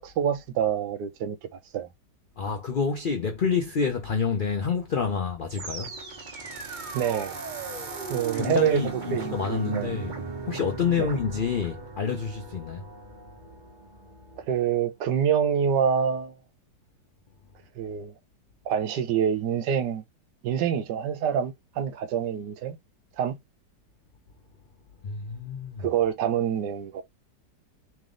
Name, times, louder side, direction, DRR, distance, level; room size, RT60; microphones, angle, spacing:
voice 1, 0.0-1.9 6.9-7.4 8.1-10.0 11.0-11.1 14.5-16.4 17.7-18.1 18.6-20.0 20.4-22.8 23.2-23.4 25.8-27.0, right 8 dB, 80° right, 1.3 m, -26 dB
voice 2, 2.4-5.9 8.3-10.1 10.4-12.8 25.0-25.8, left 6 dB, 70° left, 0.4 m, -28 dB
sound 1, 5.5-14.7, right 4 dB, 40° right, 0.7 m, -38 dB
3.3 x 3.1 x 3.7 m
omnidirectional pair, 1.9 m